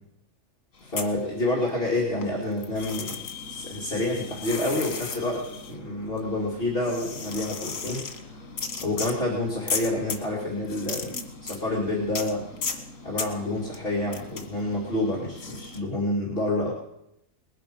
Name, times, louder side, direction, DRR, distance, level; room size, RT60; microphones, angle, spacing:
sound 1, 0.8-1.9 2.2-15.8, left 5 dB, 85° left, 1.8 m, -36 dB
voice 1, 0.9-3.2 3.5-8.4 8.8-12.5 13.0-16.7, left 1 dB, 45° left, -4 dB, 2.8 m, -28 dB
20.0 x 10.5 x 5.3 m, 0.81 s
omnidirectional pair, 1.3 m